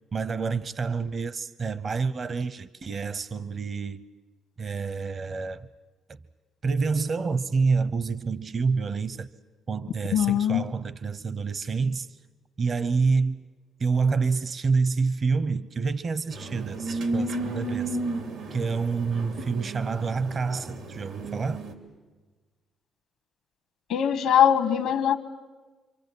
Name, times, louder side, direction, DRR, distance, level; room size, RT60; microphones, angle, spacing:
voice 1, 0.1-4.0 4.6-5.7 6.6-9.3 9.7-12.1 12.6-13.4 13.8-18.0 18.5-21.6, right 4 dB, 45° right, 0.8 m, -27 dB
voice 2, 10.1-10.6 23.9-25.2, left 9 dB, 85° left, 1.2 m, -21 dB
sound 1, 16.3-21.7, right 2 dB, 85° right, 2.8 m, -33 dB
27.5 x 24.0 x 8.0 m
cardioid pair, 90°, 0 cm